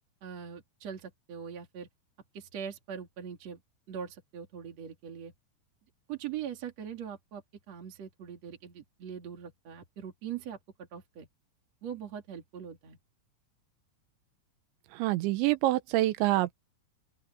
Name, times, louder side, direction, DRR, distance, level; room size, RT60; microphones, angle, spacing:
voice 1, 0.2-1.9 2.3-3.6 3.9-5.3 6.1-7.4 7.7-11.3 11.8-13.0, right 8 dB, 40° right, 2.7 m, -41 dB
voice 2, 14.9-16.5, right 17 dB, 75° right, 2.9 m, -26 dB
open air
omnidirectional pair, 5.9 m